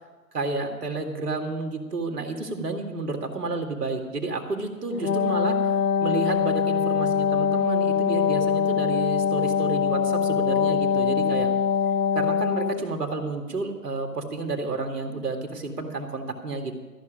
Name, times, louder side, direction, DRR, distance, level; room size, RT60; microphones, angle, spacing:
voice 1, 0.3-5.6 6.0-11.5 12.1-16.8, right 3 dB, 70° right, 3 dB, 2.2 m, -30 dB
Wind instrument woodwind instrument, 4.9-12.9, left 7 dB, 75° left, 0.9 m, -23 dB
14.0 x 6.2 x 9.1 m, 1.3 s
hypercardioid pair, 145°, 48 cm